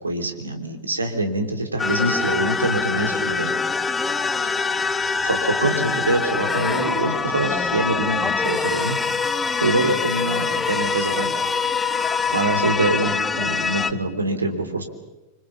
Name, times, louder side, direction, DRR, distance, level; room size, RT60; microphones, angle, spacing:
voice 1, 0.0-3.5 5.2-9.0 9.6-11.3 12.3-14.8, right 2 dB, 80° right, 6 dB, 3.2 m, -24 dB
sound 1, 1.8-13.9, left 5 dB, 15° left, 1.0 m, -24 dB
26.0 x 25.0 x 7.2 m, 1.1 s
figure-of-eight pair, 90°, 0 cm